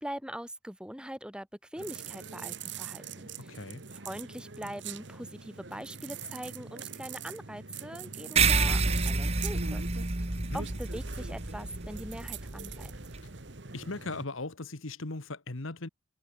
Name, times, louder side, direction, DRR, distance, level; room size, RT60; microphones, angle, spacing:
voice 1, 0.0-3.6 4.0-10.3 10.5-12.9, equal, 5° right, 6.2 m, -42 dB
sound 1, 1.8-14.2, right 6 dB, 55° right, 1.4 m, -43 dB
voice 2, 3.5-3.8 10.3-10.7 13.7-15.9, left 2 dB, 75° left, 1.6 m, -38 dB
sound 2, 8.4-13.2, right 4 dB, 30° right, 1.2 m, -29 dB
head